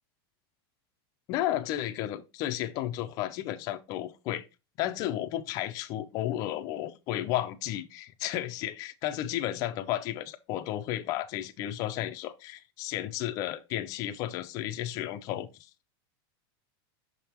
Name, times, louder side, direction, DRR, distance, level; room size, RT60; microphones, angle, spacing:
voice 1, 1.3-4.5 4.8-15.7, left 13 dB, 25° left, 0.4 m, -33 dB
6.5 x 3.5 x 4.3 m
supercardioid pair, 180°, 13 cm